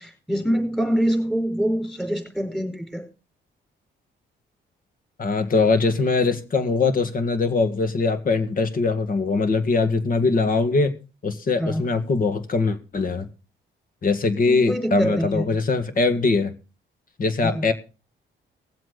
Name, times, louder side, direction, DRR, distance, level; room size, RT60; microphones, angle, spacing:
voice 1, 0.0-3.1 11.6-11.8 14.5-15.4 17.4-17.6, equal, ahead, 4.7 m, -25 dB
voice 2, 5.2-11.0 11.2-13.3 14.0-16.5 17.2-17.7, left 3 dB, 45° left, 1.8 m, -22 dB
19.0 x 7.6 x 4.0 m
cardioid pair, 90°, 20 cm